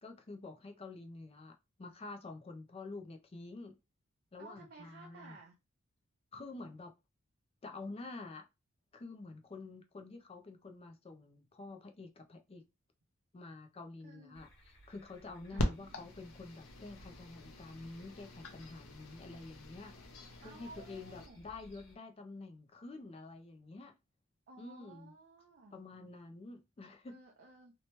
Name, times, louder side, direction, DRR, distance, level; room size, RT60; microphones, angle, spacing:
voice 1, 0.0-3.7 4.3-5.4 6.3-6.9 7.6-8.4 8.9-12.6 13.3-19.9 20.4-23.9 24.6-25.1 25.7-27.2, left 3 dB, 30° left, 0.4 m, -48 dB
voice 2, 4.4-5.6 14.0-14.5 15.5-16.1 20.4-21.5 24.5-25.8 27.1-27.7, right 3 dB, 50° right, 0.5 m, -55 dB
sound 1, 14.3-22.0, right 1 dB, 60° left, 1.3 m, -61 dB
sound 2, 15.6-21.3, left 1 dB, 80° left, 0.6 m, -42 dB
2.9 x 2.2 x 2.9 m
head